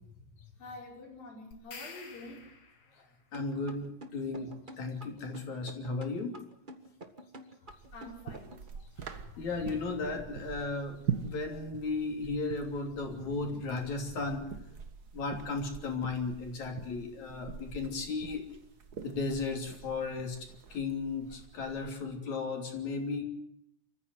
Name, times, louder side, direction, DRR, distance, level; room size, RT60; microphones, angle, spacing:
voice 1, 0.6-2.5 7.9-8.5, left 2 dB, 80° left, -2 dB, 7.2 m, -47 dB
sound 1, 1.5-3.1, left 4 dB, 40° left, 2.8 m, -49 dB
voice 2, 3.3-6.4 9.1-14.5 15.1-18.4 19.0-20.4 20.7-23.2, left 3 dB, 55° left, 4 dB, 4.3 m, -35 dB
sound 2, 3.3-8.7, right 1 dB, 45° right, 0.6 m, -48 dB
sound 3, 7.7-22.0, right 7 dB, 80° right, 0.8 m, -44 dB
27.0 x 14.5 x 9.6 m, 0.76 s
omnidirectional pair, 4.1 m